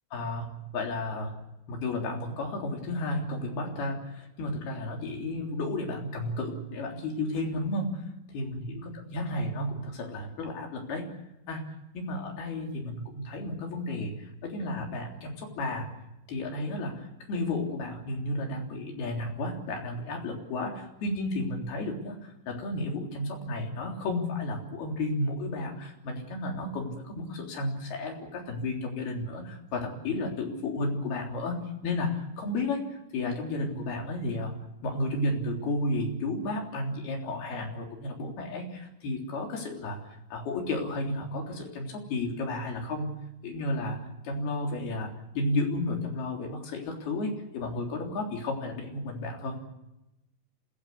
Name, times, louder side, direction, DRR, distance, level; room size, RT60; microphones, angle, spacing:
voice 1, 0.1-8.0 8.3-11.1 11.5-15.9 16.3-43.2 43.4-49.6, left 2 dB, 70° left, 1 dB, 5.4 m, -33 dB
26.0 x 17.0 x 8.2 m, 0.93 s
omnidirectional pair, 4.7 m